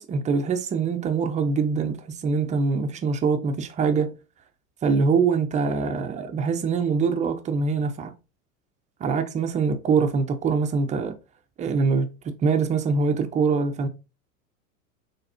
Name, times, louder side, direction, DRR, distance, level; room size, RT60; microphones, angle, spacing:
voice 1, 0.0-4.1 4.8-8.1 9.0-11.2 11.6-13.9, right 5 dB, 20° right, 0.4 m, -24 dB
3.9 x 3.5 x 2.7 m
hypercardioid pair, 100°, 43 cm